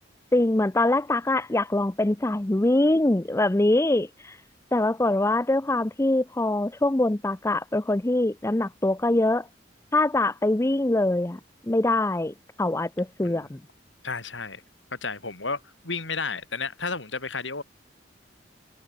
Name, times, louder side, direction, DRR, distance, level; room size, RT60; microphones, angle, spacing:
voice 1, 0.3-4.1 4.7-9.5 9.9-13.6, left 2 dB, 15° left, 0.6 m, -23 dB
voice 2, 14.0-14.6 14.9-17.6, left 4 dB, 80° left, 6.1 m, -32 dB
head